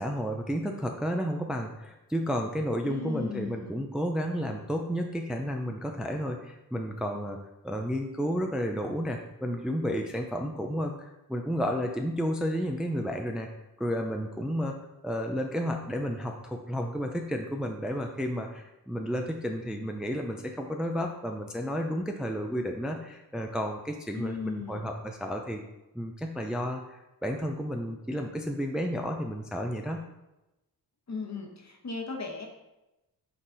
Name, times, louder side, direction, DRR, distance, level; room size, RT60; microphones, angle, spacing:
voice 1, 0.0-7.4 7.6-13.5 13.8-14.8 15.0-25.6 25.9-30.0, equal, ahead, 3 dB, 0.4 m, -32 dB
voice 2, 2.8-3.8 24.2-24.9 31.1-32.5, left 4 dB, 45° left, 1 dB, 1.2 m, -37 dB
6.2 x 4.0 x 3.9 m, 0.97 s
wide cardioid pair, 80°, 38 cm